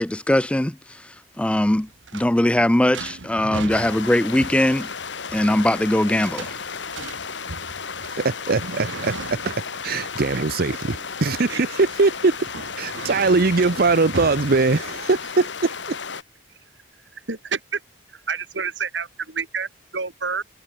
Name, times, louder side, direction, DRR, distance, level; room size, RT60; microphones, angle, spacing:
voice 1, 0.0-4.9 5.3-6.6, left 1 dB, 5° left, 0.4 m, -21 dB
sound 1, 1.8-15.3, right 3 dB, 85° right, 1.6 m, -38 dB
sound 2, 3.7-16.2, left 6 dB, 70° left, 1.8 m, -34 dB
voice 2, 8.0-12.5 12.8-16.0, right 3 dB, 55° right, 0.8 m, -21 dB
voice 3, 17.1-17.8 18.1-20.4, right 5 dB, 70° right, 2.9 m, -29 dB
head